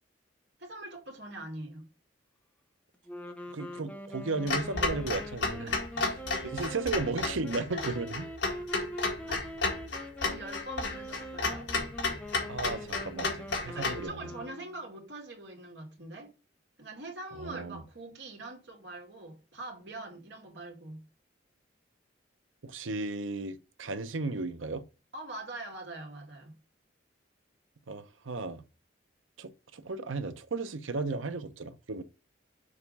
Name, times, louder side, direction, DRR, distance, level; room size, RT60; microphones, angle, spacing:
voice 1, 0.6-1.8 5.6-6.1 8.7-8.9 9.3-9.4 10.2-11.7 13.7-16.3 16.8-21.1 25.1-26.6, right 2 dB, 65° right, 2.3 m, -43 dB
sound 1, 3.1-14.9, equal, 5° left, 0.7 m, -43 dB
voice 2, 3.5-5.7 6.4-8.3 12.5-14.3 17.4-17.8 22.6-24.8 27.9-28.6 29.4-32.0, right 3 dB, 90° right, 0.8 m, -35 dB
Clock, 4.5-14.0, left 3 dB, 65° left, 1.8 m, -33 dB
6.6 x 3.6 x 5.3 m
head